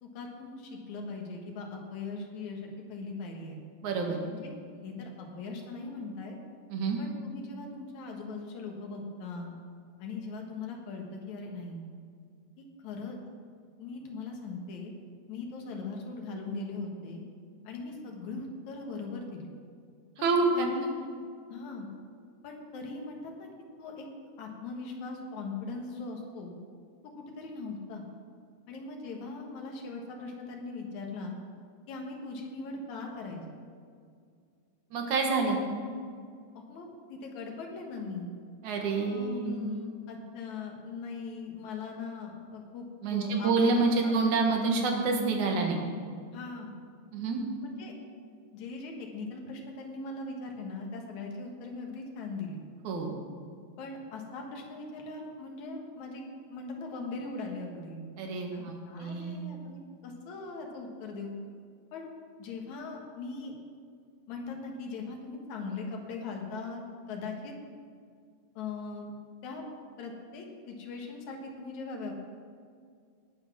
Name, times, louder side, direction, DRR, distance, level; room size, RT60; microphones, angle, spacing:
voice 1, 0.0-3.6 4.3-4.5 4.8-6.4 7.0-9.5 10.0-11.8 12.6-13.2 13.8-14.9 15.3-17.2 17.6-19.5 20.2-20.3 20.5-21.1 21.5-21.9 22.4-23.5 23.8-24.0 24.4-26.5 27.2-28.0 28.7-31.4 31.9-33.6 36.5-38.3 39.0-43.5 44.0-44.1 46.3-46.7 47.6-48.0 48.5-52.6 53.8-58.0 58.5-61.3 61.9-62.1 62.4-63.5 64.3-66.8 67.1-67.5 68.6-69.1 69.4-69.6 70.0-72.1, left 3 dB, 75° left, 1 dB, 2.8 m, -40 dB
voice 2, 3.8-4.3 6.7-7.0 20.2-20.7 34.9-35.6 38.6-39.6 43.0-45.8 47.1-47.4 52.8-53.2 58.2-59.4, right 3 dB, 85° right, 2 dB, 2.9 m, -27 dB
18.5 x 6.3 x 6.0 m, 2.2 s
omnidirectional pair, 3.3 m